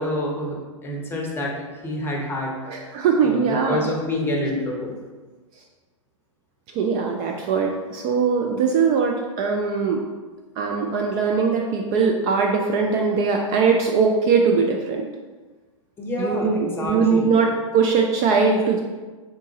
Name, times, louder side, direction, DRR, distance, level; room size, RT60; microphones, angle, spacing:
voice 1, 0.0-1.5 1.8-2.9 3.2-5.0 16.0-17.3, left 1 dB, 15° left, -1 dB, 0.7 m, -27 dB
voice 2, 2.7-3.9 6.7-10.0 10.6-15.1 16.2-18.8, right 5 dB, 30° right, 1 dB, 0.4 m, -21 dB
3.8 x 3.6 x 2.8 m, 1.3 s
figure-of-eight pair, 105°, 17 cm